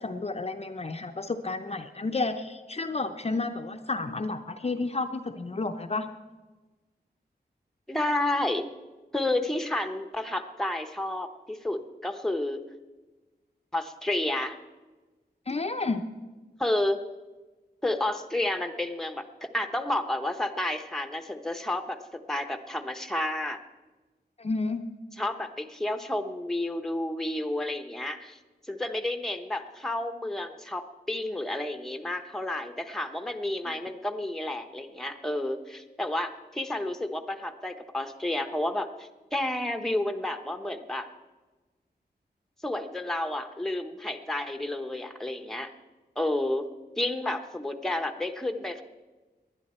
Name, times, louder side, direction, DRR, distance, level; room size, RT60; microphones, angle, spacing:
voice 1, 0.0-6.1 15.5-16.0 24.4-24.8 33.6-33.7, left 3 dB, 35° left, 6 dB, 0.6 m, -31 dB
voice 2, 7.9-8.6 9.1-12.6 13.7-14.6 16.6-17.0 17.8-23.6 25.2-28.4 28.7-41.1 42.6-45.7 46.2-46.6 47.0-48.8, left 1 dB, 5° left, 7 dB, 0.8 m, -31 dB
19.5 x 10.5 x 4.3 m, 1.2 s
wide cardioid pair, 110°, 17 cm